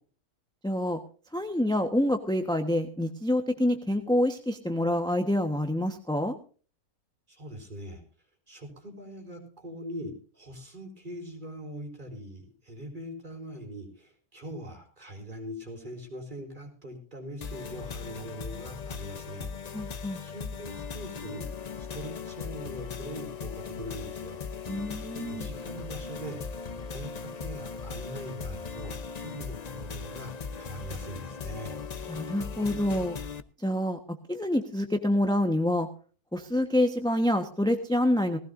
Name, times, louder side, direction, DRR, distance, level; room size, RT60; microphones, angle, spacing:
voice 1, 0.6-1.0 1.3-6.3 19.7-20.2 24.7-25.5 32.1-33.2 33.6-34.0 34.3-35.9 36.3-38.4, left 1 dB, 5° left, 5 dB, 1.0 m, -27 dB
voice 2, 7.3-8.0 8.5-19.9 20.2-21.5 21.8-24.8 25.3-26.4 26.8-31.8, equal, 30° right, 2 dB, 4.1 m, -42 dB
sound 1, 17.4-33.4, left 5 dB, 45° left, 0.5 m, -38 dB
18.5 x 16.5 x 2.6 m, 0.39 s
omnidirectional pair, 1.5 m